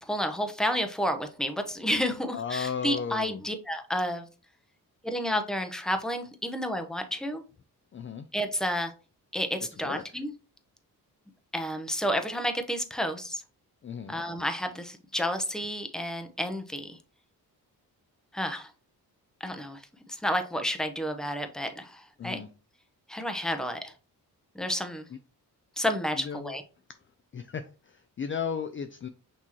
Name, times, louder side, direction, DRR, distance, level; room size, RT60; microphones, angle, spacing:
voice 1, 0.0-4.3 5.0-7.4 8.3-8.9 9.3-10.3 11.5-13.4 14.1-17.0 18.3-18.7 19.4-19.8 20.1-22.4 23.1-23.9 24.5-25.0 25.8-26.6, equal, ahead, 0.7 m, -30 dB
voice 2, 2.3-3.4 7.9-8.3 9.8-10.0 13.8-14.1 22.2-22.5 26.2-26.5 27.3-29.1, left 6 dB, 30° left, 0.4 m, -35 dB
5.9 x 3.0 x 3.0 m
cardioid pair, 75°, 39 cm